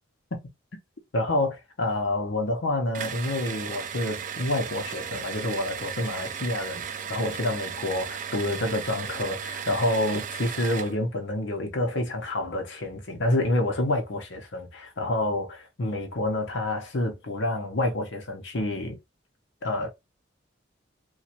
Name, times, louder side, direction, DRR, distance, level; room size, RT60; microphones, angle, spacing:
voice 1, 1.1-19.0 19.6-19.9, left 1 dB, 75° left, 0.8 m, -28 dB
sound 1, 2.9-11.0, right 8 dB, 45° right, 0.4 m, -35 dB
3.0 x 2.3 x 2.8 m
head